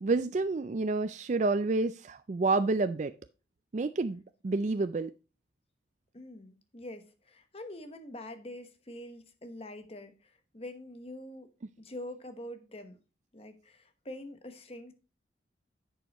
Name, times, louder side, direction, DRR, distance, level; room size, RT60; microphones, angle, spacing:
voice 1, 0.0-3.1 3.7-5.1, right 3 dB, 40° right, 0.4 m, -29 dB
voice 2, 6.1-11.5 11.8-13.0 13.3-14.9, left 1 dB, 35° left, 1.1 m, -45 dB
11.0 x 7.0 x 3.0 m
head